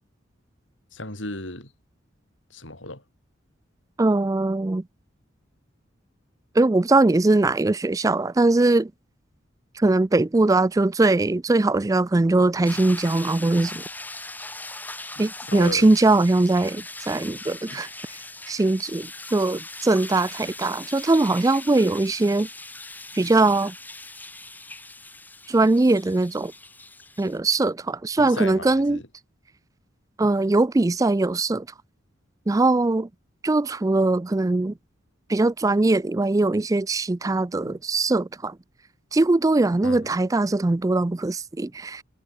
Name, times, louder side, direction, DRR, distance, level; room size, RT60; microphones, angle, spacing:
voice 1, 0.9-1.7 2.5-3.0 12.7-12.8 15.2-15.9 17.7-17.8 28.2-29.1 30.2-30.3 37.6-37.8 39.8-40.1, left 2 dB, 75° left, 7.9 m, -36 dB
voice 2, 4.0-4.8 6.6-8.9 9.8-13.8 15.2-17.9 18.5-22.5 23.1-23.7 25.5-26.5 27.2-29.0 30.2-31.7 32.5-33.1 33.4-34.7 35.3-38.6 39.1-42.0, right 2 dB, 15° right, 0.4 m, -21 dB
sound 1, 12.6-27.4, left 2 dB, 10° left, 5.2 m, -40 dB
head